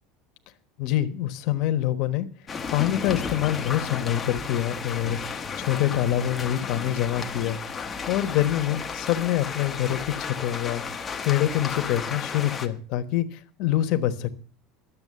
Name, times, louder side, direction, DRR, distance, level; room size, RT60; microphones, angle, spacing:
voice 1, 0.8-2.3 2.7-7.6 8.1-14.3, left 12 dB, 45° left, 1.1 m, -26 dB
sound 1, 2.5-12.7, left 5 dB, 15° left, 0.9 m, -33 dB
12.5 x 7.6 x 7.5 m
cardioid pair, 175°, 0 cm